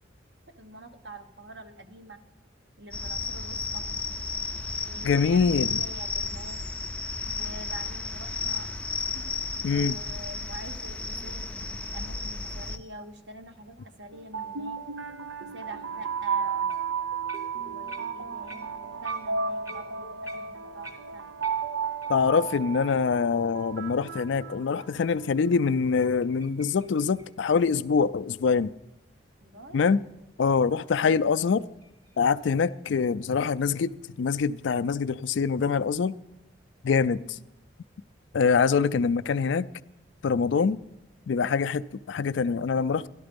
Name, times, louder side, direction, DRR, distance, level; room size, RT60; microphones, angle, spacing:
voice 1, 0.6-2.2 2.8-3.8 4.8-6.6 7.4-8.7 9.1-9.3 9.7-11.5 11.8-14.8 15.4-16.7 17.6-21.3 29.4-29.8 37.0-37.5 38.9-39.1, right 2 dB, 60° right, 1.0 m, -45 dB
sound 1, 2.9-12.8, left 4 dB, 5° left, 0.5 m, -33 dB
voice 2, 5.0-5.8 9.6-9.9 22.1-28.7 29.7-30.0 30.4-31.6 32.2-36.1 36.8-37.4 38.3-39.7 40.2-40.8 41.3-43.1, left 5 dB, 70° left, 0.4 m, -24 dB
sound 2, 14.1-25.2, right 6 dB, 80° right, 0.7 m, -33 dB
sound 3, 16.7-17.0 17.3-22.2 22.6-22.7 23.2-23.3 23.8-23.9 25.6-28.4 31.2-32.7, right 1 dB, 15° right, 0.8 m, -49 dB
12.5 x 12.0 x 5.2 m
head